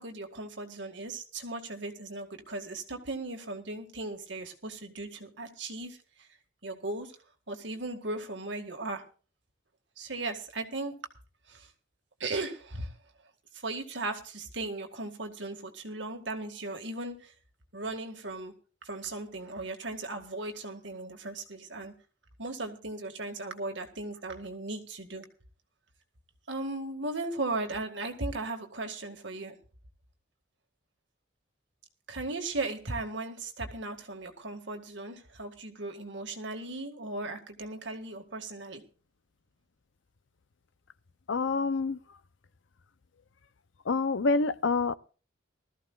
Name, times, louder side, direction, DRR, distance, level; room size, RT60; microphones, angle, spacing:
voice 1, 0.0-6.0 6.6-7.1 7.5-9.0 10.0-10.9 11.5-11.7 12.2-12.9 13.5-17.3 17.7-18.5 18.8-21.9 22.4-25.3 26.5-29.6 32.1-38.8, right 2 dB, 70° right, 2.0 m, -37 dB
voice 2, 41.3-42.0 43.9-45.0, left 4 dB, 75° left, 0.6 m, -27 dB
20.5 x 14.0 x 2.4 m
head